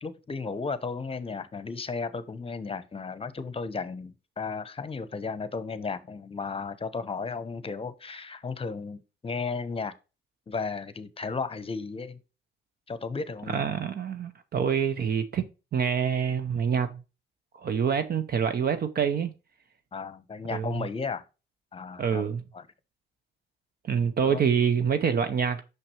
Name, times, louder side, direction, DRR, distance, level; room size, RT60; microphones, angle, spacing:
voice 1, 0.0-9.9 10.5-12.2 12.9-13.7 19.9-21.2 21.7-22.2 22.5-22.7 24.2-24.4, left 4 dB, 30° left, 0.9 m, -34 dB
voice 2, 13.5-17.0 17.6-19.3 20.5-20.8 22.0-22.4 23.8-25.6, right 7 dB, 50° right, 0.7 m, -26 dB
6.0 x 5.9 x 2.9 m
cardioid pair, 90°, 20 cm